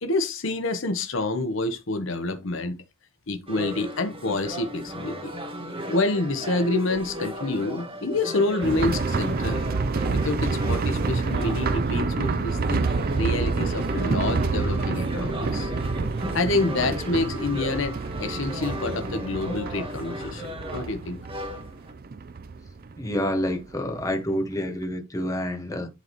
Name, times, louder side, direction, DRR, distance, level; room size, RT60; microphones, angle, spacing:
voice 1, 0.0-2.8 3.3-5.3 5.9-9.6 10.0-12.8 13.1-15.7 16.3-21.2, left 2 dB, 70° left, 1.0 m, -27 dB
sound 1, 3.5-21.9, equal, 25° right, 1.5 m, -36 dB
sound 2, 8.6-24.1 24.3-24.4 24.8-24.9, right 4 dB, 45° right, 0.5 m, -28 dB
voice 2, 23.0-25.9, equal, 15° left, 1.5 m, -28 dB
11.5 x 4.0 x 3.1 m
head